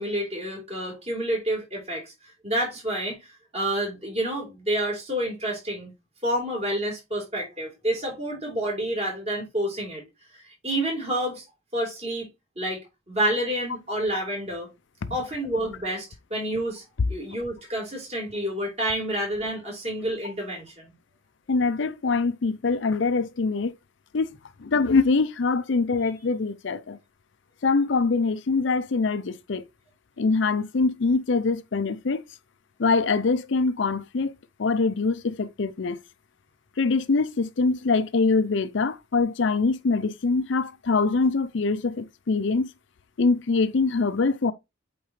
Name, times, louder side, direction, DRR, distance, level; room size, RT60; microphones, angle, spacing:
voice 1, 0.0-2.1 2.4-3.2 3.5-5.9 6.2-10.0 10.3-11.4 11.7-12.3 12.6-14.7 15.1-16.8 17.1-20.9, right 1 dB, 30° right, 3.7 m, -29 dB
voice 2, 21.5-23.7 24.1-24.3 24.6-27.0 27.6-29.6 30.2-32.2 32.8-34.3 34.6-36.0 36.8-42.7 43.2-44.5, left 4 dB, 60° left, 0.5 m, -24 dB
8.2 x 4.4 x 3.1 m
head